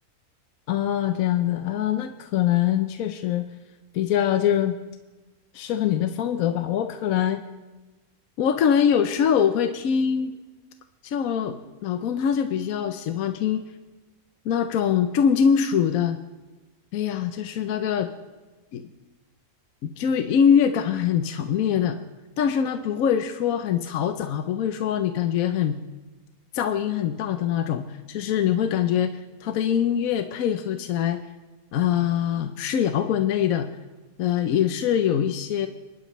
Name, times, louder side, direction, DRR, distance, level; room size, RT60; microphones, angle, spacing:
voice 1, 0.7-3.4 3.9-4.8 5.5-7.4 8.4-10.4 11.0-11.6 11.8-13.6 14.4-16.2 16.9-18.1 18.7-18.8 19.8-22.0 22.4-25.8 26.5-31.2 31.7-33.7 34.2-35.7, left 8 dB, 75° left, 8 dB, 1.1 m, -23 dB
28.0 x 11.5 x 3.1 m, 1.2 s
omnidirectional pair, 1.5 m